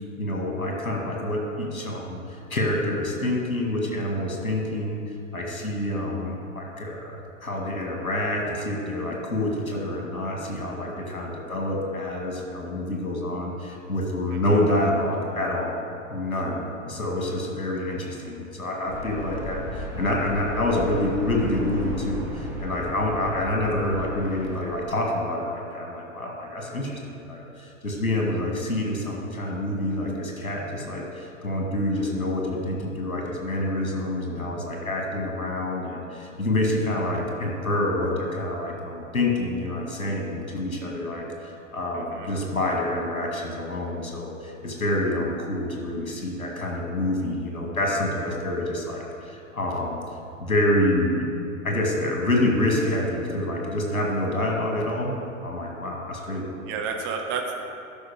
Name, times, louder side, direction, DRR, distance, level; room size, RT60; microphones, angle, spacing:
voice 1, 0.2-5.0 5.3-15.8 16.1-50.0 50.4-51.3 51.6-55.1 55.4-56.5, left 1 dB, 80° left, 0 dB, 2.1 m, -27 dB
voice 2, 14.3-14.6 41.9-42.3 56.7-57.6, right 5 dB, 30° right, 2 dB, 0.9 m, -31 dB
sound 1, 18.9-24.6, equal, 5° right, 1.8 m, -35 dB
12.0 x 5.6 x 4.9 m, 2.6 s
figure-of-eight pair, 100°, 41 cm